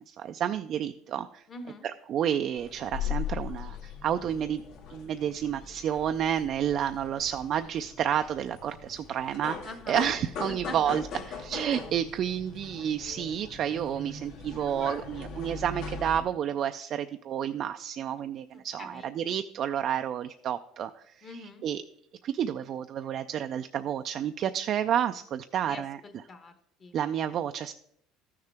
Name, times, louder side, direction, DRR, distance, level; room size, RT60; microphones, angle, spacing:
voice 1, 0.1-1.4 2.1-3.8 4.0-4.6 4.9-9.6 9.9-11.0 11.4-20.9 21.6-21.8 22.2-26.0 26.9-27.7, right 9 dB, 45° right, 8 dB, 0.3 m, -30 dB
voice 2, 1.5-1.9 9.6-10.1 10.5-11.4 18.5-19.1 21.2-21.7 25.6-27.0, left 2 dB, 30° left, 8 dB, 1.0 m, -44 dB
sound 1, 2.6-16.2, left 6 dB, 70° left, 1.8 m, -40 dB
14.0 x 6.5 x 3.4 m, 0.72 s
cardioid pair, 140°, 0 cm